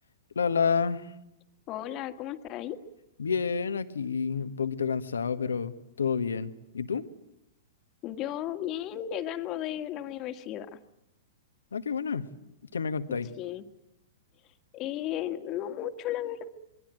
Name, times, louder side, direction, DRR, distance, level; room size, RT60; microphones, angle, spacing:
voice 1, 0.3-1.1 3.2-5.7 6.0-7.0 11.7-12.3 12.7-13.3, left 6 dB, 80° left, 11 dB, 1.5 m, -29 dB
voice 2, 1.7-2.8 8.0-10.8 13.4-13.6 14.7-16.5, left 11 dB, 35° left, 8 dB, 2.0 m, -34 dB
27.0 x 22.5 x 9.1 m, 0.85 s
figure-of-eight pair, 110°, 0 cm